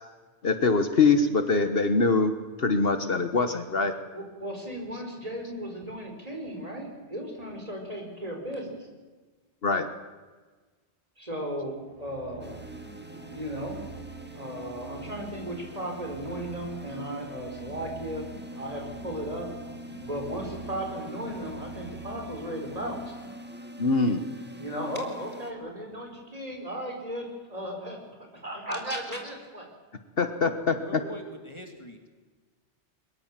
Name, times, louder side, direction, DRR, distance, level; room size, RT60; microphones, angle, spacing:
voice 1, 0.4-3.9 9.6-9.9 23.8-24.3 30.2-30.8, left 4 dB, 55° left, 9 dB, 1.5 m, -23 dB
voice 2, 4.1-8.7 11.2-12.7 13.3-13.8 14.3-18.2 18.5-19.5 20.1-23.1 24.6-28.0 28.3-29.7, equal, 35° right, 2 dB, 4.7 m, -35 dB
sound 1, 11.8-23.4, right 6 dB, 70° right, 4.4 m, -46 dB
sound 2, 12.4-25.5, equal, 10° right, 1.9 m, -44 dB
voice 3, 30.4-32.0, equal, 25° left, 4 dB, 2.3 m, -44 dB
22.0 x 22.0 x 7.5 m, 1.3 s
omnidirectional pair, 1.2 m